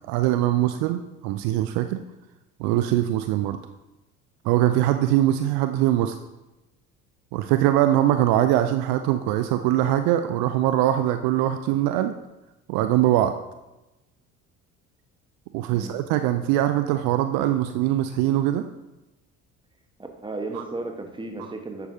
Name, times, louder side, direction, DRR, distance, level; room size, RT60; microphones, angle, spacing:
voice 1, 0.1-2.0 2.6-3.6 4.4-6.1 7.3-12.1 12.7-13.3 15.5-18.6 20.6-20.7, right 13 dB, 60° right, 9 dB, 0.6 m, -22 dB
voice 2, 20.0-21.9, right 2 dB, 10° right, 4 dB, 1.3 m, -34 dB
10.5 x 6.9 x 2.8 m, 0.99 s
hypercardioid pair, 60°, 42 cm